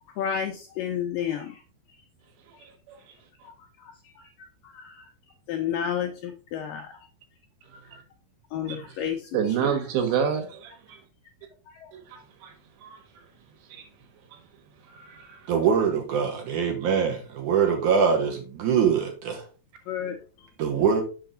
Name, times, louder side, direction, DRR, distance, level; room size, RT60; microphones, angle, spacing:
voice 1, 0.1-1.6 2.5-2.7 3.4-5.1 5.5-7.0 8.5-9.8 10.1-10.4 11.7-11.9 19.9-20.5, left 8 dB, 80° left, 2.0 m, -32 dB
voice 2, 9.3-11.0 12.1-12.5 12.8-13.0 13.7-13.8 14.9-15.4, right 8 dB, 90° right, 3.6 m, -28 dB
voice 3, 15.5-19.4 20.6-21.0, right 6 dB, 65° right, 2.1 m, -23 dB
6.9 x 5.7 x 3.8 m
omnidirectional pair, 4.8 m